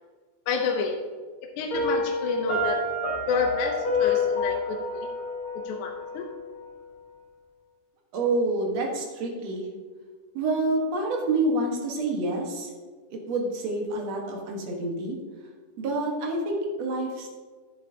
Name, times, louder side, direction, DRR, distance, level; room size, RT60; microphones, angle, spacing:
voice 1, 0.5-1.0 1.6-2.8 3.3-5.1 5.5-6.3, left 5 dB, 75° left, 2 dB, 2.2 m, -29 dB
Piano, 1.7-6.6, left 2 dB, 35° left, 2.9 m, -28 dB
voice 2, 8.1-9.7 10.3-12.7 13.1-15.2 15.8-17.3, right 2 dB, 60° right, 0 dB, 2.4 m, -28 dB
11.0 x 8.8 x 2.8 m, 1.4 s
omnidirectional pair, 3.6 m